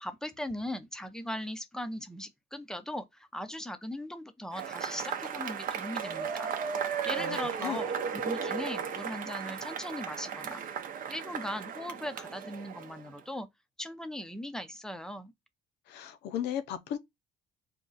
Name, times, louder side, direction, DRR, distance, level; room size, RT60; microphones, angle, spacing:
voice 1, 0.0-6.5 7.0-10.6 11.1-13.5 13.8-15.3, left 1 dB, 5° left, 0.5 m, -39 dB
Cheering / Applause / Crowd, 4.5-13.2, right 7 dB, 55° right, 0.7 m, -35 dB
voice 2, 7.2-7.8 15.9-17.0, left 9 dB, 80° left, 0.6 m, -36 dB
3.6 x 2.4 x 3.9 m
cardioid pair, 110°, 17 cm